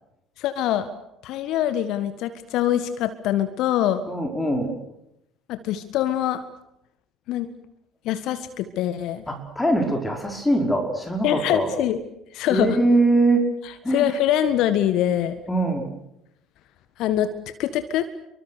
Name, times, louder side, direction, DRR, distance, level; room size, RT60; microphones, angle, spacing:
voice 1, 0.4-0.9 1.2-4.0 5.5-6.4 7.3-7.5 8.0-9.2 11.2-12.0 12.3-12.8 13.9-15.3 17.0-17.3 17.6-18.1, left 11 dB, 55° left, 12 dB, 1.6 m, -24 dB
voice 2, 4.1-4.7 9.3-11.7 12.5-13.5 13.8-14.1 15.5-15.9, right 2 dB, 10° left, 3 dB, 5.1 m, -22 dB
29.5 x 24.5 x 6.6 m, 0.84 s
figure-of-eight pair, 60°, 0 cm